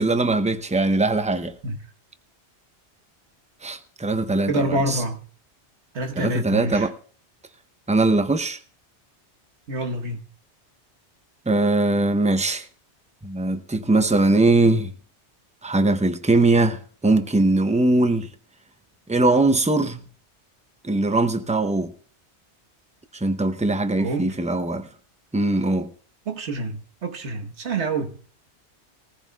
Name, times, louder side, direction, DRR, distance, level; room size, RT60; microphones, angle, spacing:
voice 1, 0.0-1.5 3.6-5.0 6.2-6.9 7.9-8.6 11.5-12.6 13.2-14.9 15.6-16.8 17.0-18.3 19.1-20.0 20.8-21.9 23.2-24.9 25.3-25.9, right 2 dB, 10° right, 0.5 m, -21 dB
voice 2, 4.5-5.2 5.9-6.9 9.7-10.2 24.0-24.3 26.3-28.2, right 2 dB, 80° right, 1.6 m, -27 dB
22.0 x 14.5 x 2.3 m
omnidirectional pair, 1.1 m